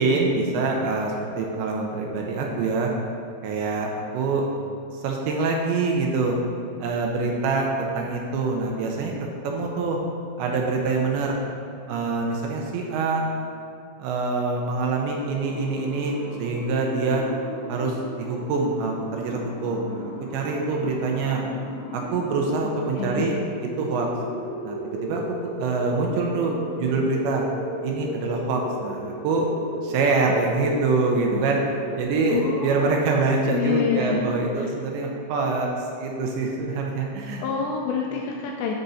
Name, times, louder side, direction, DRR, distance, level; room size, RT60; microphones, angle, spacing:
voice 1, 0.0-2.9 3.4-4.4 5.0-6.3 6.8-10.0 10.4-11.4 11.9-13.2 14.0-17.2 17.7-21.4 21.9-23.3 23.8-24.1 24.6-27.4 27.8-29.5 29.8-31.6 32.0-37.5, right 3 dB, 80° right, 0 dB, 2.8 m, -25 dB
sound 1, 15.2-34.3, equal, 50° left, 2.2 m, -35 dB
voice 2, 32.3-33.0 33.5-34.2 37.4-38.7, left 6 dB, 90° left, 0 dB, 2.5 m, -27 dB
12.0 x 5.2 x 4.2 m, 2.5 s
omnidirectional pair, 5.6 m